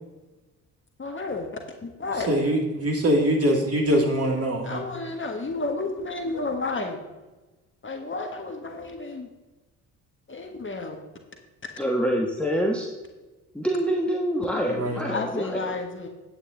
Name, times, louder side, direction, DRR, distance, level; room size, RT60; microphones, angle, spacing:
voice 1, 1.0-1.5 1.8-2.3 4.6-7.0 7.8-9.3 10.3-11.0 15.1-16.1, left 3 dB, 25° left, 3 dB, 1.5 m, -31 dB
voice 2, 2.3-4.8 14.7-15.0, equal, 30° right, 1 dB, 2.4 m, -23 dB
voice 3, 11.8-12.9 13.5-15.7, equal, 5° left, -1 dB, 1.3 m, -26 dB
9.2 x 8.8 x 3.9 m, 1.2 s
figure-of-eight pair, 50°, 44 cm